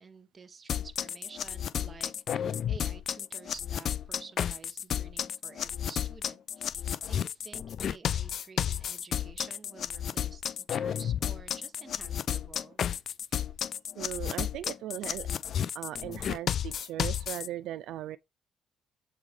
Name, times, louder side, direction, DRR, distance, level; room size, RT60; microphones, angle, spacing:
voice 1, 0.0-12.8, right 5 dB, 35° right, 0.9 m, -51 dB
sound 1, 0.7-17.5, left 9 dB, 60° left, 0.3 m, -32 dB
voice 2, 14.0-15.3 15.7-18.2, right 13 dB, 85° right, 0.3 m, -38 dB
8.0 x 3.2 x 5.1 m
cardioid pair, 90°, 0 cm